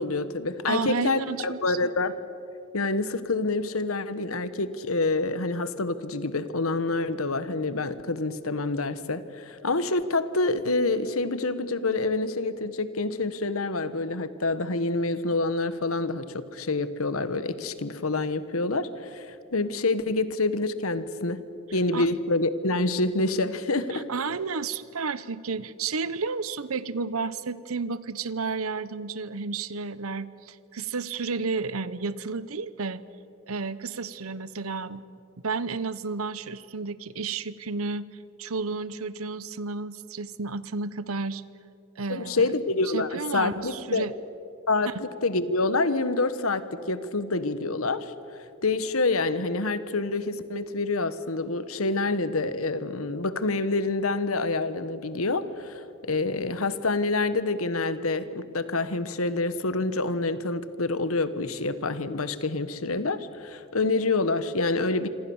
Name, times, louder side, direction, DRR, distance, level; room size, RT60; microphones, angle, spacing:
voice 1, 0.0-2.2 2.7-21.4 21.7-24.1 42.1-44.1 44.7-48.1 48.6-65.1, left 3 dB, 80° left, 13 dB, 1.3 m, -27 dB
voice 2, 0.7-1.8 21.9-22.1 23.9-33.0 33.5-35.0 35.4-38.1 38.4-41.4 42.0-42.5 42.9-44.1, right 4 dB, 80° right, 16 dB, 1.0 m, -32 dB
26.5 x 25.5 x 7.2 m, 2.7 s
head